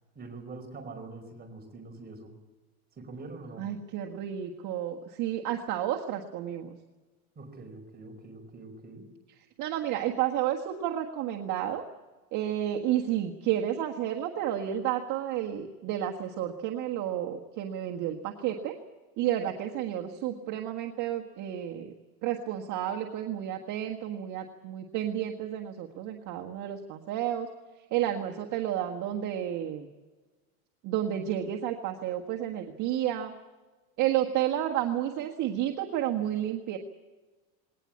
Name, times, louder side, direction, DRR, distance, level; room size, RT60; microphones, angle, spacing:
voice 1, 0.1-2.4 3.0-3.7 7.3-9.1, right 3 dB, 20° right, 5 dB, 4.9 m, -44 dB
voice 2, 3.6-6.8 9.6-11.8 12.3-18.8 19.2-21.9 22.2-27.5 27.9-29.9 30.8-33.3 34.0-36.8, right 11 dB, 45° right, 2 dB, 1.6 m, -31 dB
21.0 x 18.5 x 8.5 m, 1.3 s
supercardioid pair, 140°, 43 cm